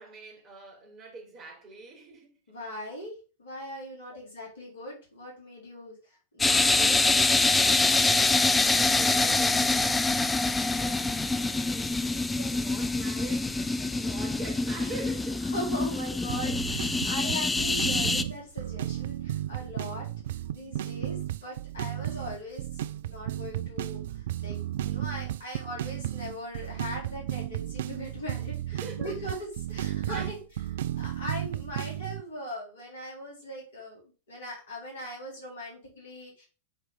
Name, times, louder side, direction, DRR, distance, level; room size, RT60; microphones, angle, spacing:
voice 1, 0.0-2.4 4.1-4.2 7.9-10.1 10.8-15.5 16.4-16.6 28.7-29.1 30.1-30.3, right 3 dB, 30° right, 3.5 m, -44 dB
voice 2, 2.5-3.1 3.4-7.1 15.5-30.4 31.0-36.4, equal, 65° left, 4.2 m, -40 dB
sound 1, 6.4-18.2, left 3 dB, 10° left, 0.5 m, -25 dB
sound 2, 16.3-32.2, right 12 dB, 60° right, 0.3 m, -34 dB
8.0 x 4.5 x 3.6 m
figure-of-eight pair, 90°, 0 cm